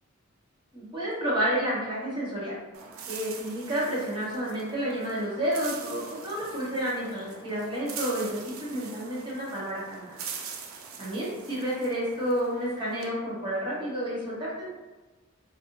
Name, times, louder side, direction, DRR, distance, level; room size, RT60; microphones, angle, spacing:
voice 1, 0.7-2.6 3.1-10.1 11.0-14.7, equal, 25° right, -7 dB, 1.1 m, -30 dB
sound 1, 2.7-13.1, right 6 dB, 80° right, 0.4 m, -43 dB
3.4 x 2.5 x 2.6 m, 1.2 s
head